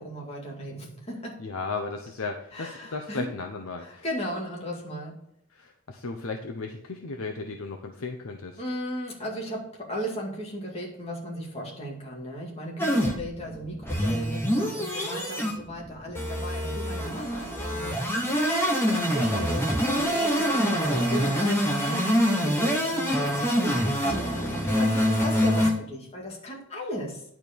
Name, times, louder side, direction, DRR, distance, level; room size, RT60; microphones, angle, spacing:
voice 1, 0.0-1.4 2.5-3.3 3.8-5.2 8.6-18.1 18.9-27.2, equal, 30° left, -2 dB, 2.1 m, -36 dB
voice 2, 1.4-4.0 5.5-8.6, left 4 dB, 85° left, 3 dB, 0.8 m, -35 dB
sound 1, 12.8-25.7, equal, 10° left, 1.4 m, -25 dB
10.5 x 4.7 x 5.3 m, 0.75 s
head